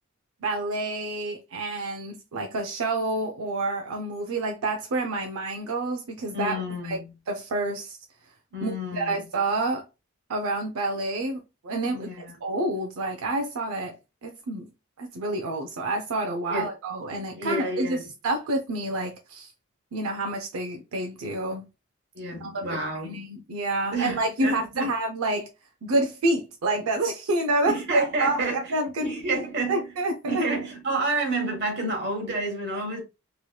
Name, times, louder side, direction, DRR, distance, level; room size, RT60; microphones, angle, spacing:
voice 1, 0.4-6.6 6.8-7.0 7.3-8.0 8.6-9.8 10.3-11.4 11.6-12.1 12.4-13.9 14.2-14.7 15.0-19.5 19.9-21.7 22.4-25.5 25.8-29.4 29.7-30.5, right 2 dB, 90° right, 0.5 m, -28 dB
voice 2, 6.3-7.1 8.5-9.2 11.9-12.4 16.5-16.7 17.3-18.0 22.1-23.2 23.9-24.9 27.7-28.7 29.0-29.8 30.2-33.0, right 2 dB, 55° right, 1.3 m, -29 dB
3.1 x 3.0 x 2.2 m
head